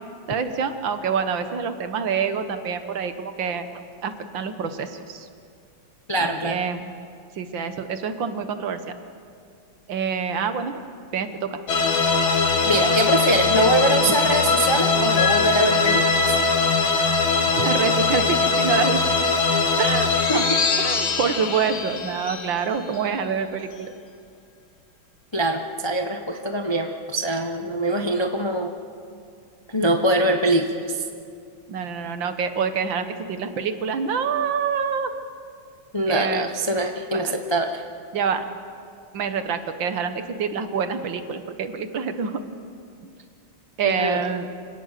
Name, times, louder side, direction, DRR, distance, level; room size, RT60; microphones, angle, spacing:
voice 1, 0.3-5.3 6.2-6.9 7.4-8.8 9.9-10.7 11.1-11.6 14.1-14.2 17.6-19.2 19.8-20.5 20.8-23.9 31.7-35.1 36.1-36.5 37.1-37.3 38.1-38.4 39.1-42.4 43.8-44.5, right 6 dB, 70° right, 9 dB, 1.9 m, -26 dB
voice 2, 6.1-6.6 12.6-16.2 20.3-20.4 25.3-28.7 29.7-31.0 35.9-37.8 43.8-44.2, right 1 dB, 25° left, 4 dB, 0.6 m, -23 dB
sound 1, 11.7-23.1, left 4 dB, 90° left, 2.3 m, -21 dB
26.0 x 18.0 x 6.7 m, 2.3 s
omnidirectional pair, 2.2 m